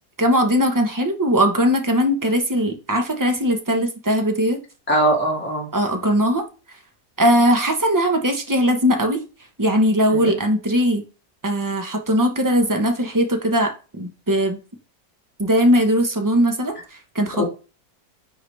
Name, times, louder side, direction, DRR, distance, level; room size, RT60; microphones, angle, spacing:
voice 1, 0.2-4.6 5.7-6.4 7.2-9.2 9.6-11.0 11.4-14.6 15.4-17.4, equal, 15° right, 0.7 m, -19 dB
voice 2, 4.9-5.7 10.1-10.3 17.4-17.5, right 1 dB, 5° left, 1.9 m, -21 dB
9.5 x 3.9 x 3.3 m
omnidirectional pair, 1.9 m